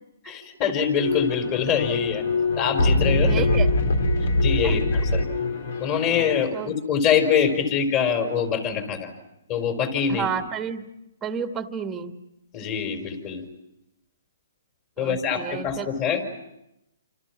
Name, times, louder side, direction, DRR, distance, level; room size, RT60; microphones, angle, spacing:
voice 1, 0.2-2.2 2.6-3.4 4.4-5.2 5.8-9.1 9.5-10.3 12.5-13.4 15.0-16.2, left 7 dB, 30° left, 6 dB, 4.7 m, -24 dB
sound 1, 1.0-6.4, left 2 dB, 70° left, 3.1 m, -23 dB
voice 2, 3.2-3.7 4.6-4.8 6.5-6.7 10.1-10.8 11.2-12.1 15.0-15.9, right 7 dB, 10° right, 7 dB, 1.5 m, -31 dB
28.5 x 27.5 x 6.0 m, 0.86 s
hypercardioid pair, 150°, 0 cm